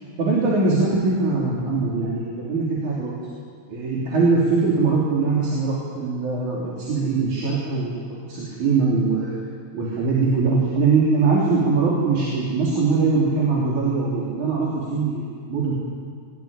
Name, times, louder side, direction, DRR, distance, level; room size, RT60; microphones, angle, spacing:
voice 1, 0.2-3.1 3.7-9.3 9.7-15.7, right 4 dB, 90° right, -5 dB, 4.7 m, -22 dB
21.0 x 19.5 x 9.7 m, 2.1 s
omnidirectional pair, 3.3 m